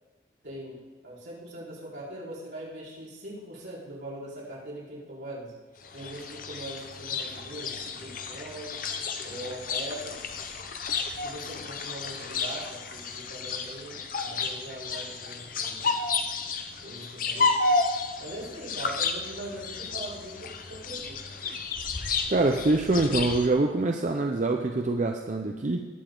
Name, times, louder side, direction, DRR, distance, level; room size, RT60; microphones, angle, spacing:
voice 1, 0.4-5.6 5.9-8.8 9.2-10.2 11.2-16.0 16.8-17.6 18.2-21.2, right 1 dB, 75° right, -7 dB, 4.3 m, -41 dB
sound 1, 5.8-23.5, left 4 dB, 50° left, 0.7 m, -32 dB
voice 2, 22.3-25.9, right 2 dB, 40° right, 3 dB, 0.5 m, -25 dB
19.0 x 6.9 x 3.8 m, 1.3 s
head